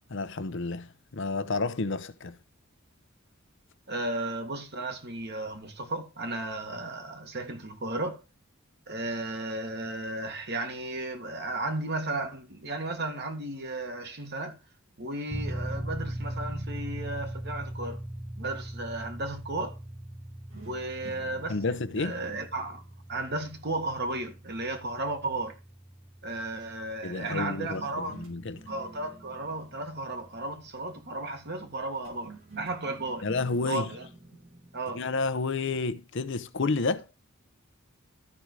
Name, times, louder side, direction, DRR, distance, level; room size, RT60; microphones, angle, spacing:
voice 1, 0.1-2.4 21.5-22.2 27.0-28.6 33.2-33.9 34.9-37.1, left 3 dB, 65° left, 0.7 m, -30 dB
voice 2, 3.9-8.2 8.9-14.5 15.0-18.0 18.4-19.7 20.6-22.8 23.1-25.6 26.2-28.2 28.7-33.3 33.6-34.1 34.7-35.0, right 2 dB, 55° right, 1.8 m, -34 dB
sound 1, 15.3-29.7, right 1 dB, 10° right, 0.5 m, -40 dB
sound 2, 20.5-23.9 27.7-31.1 32.0-35.9, right 3 dB, 85° right, 4.4 m, -51 dB
13.0 x 5.4 x 4.7 m
head